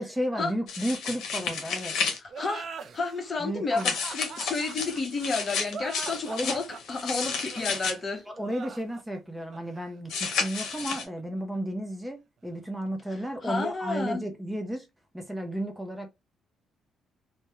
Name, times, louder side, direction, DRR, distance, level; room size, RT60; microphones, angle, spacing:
voice 1, 0.0-2.0 3.4-4.0 6.3-6.5 8.2-14.9 15.1-16.1, equal, 5° right, 0.5 m, -33 dB
sound 1, 0.7-2.2 3.8-7.9 10.1-11.0, left 5 dB, 80° left, 0.7 m, -32 dB
voice 2, 2.2-8.2 13.4-14.2, left 3 dB, 40° left, 0.8 m, -31 dB
sound 2, 2.3-11.6, right 5 dB, 55° right, 0.4 m, -43 dB
2.2 x 2.1 x 2.8 m
cardioid pair, 90°, 0 cm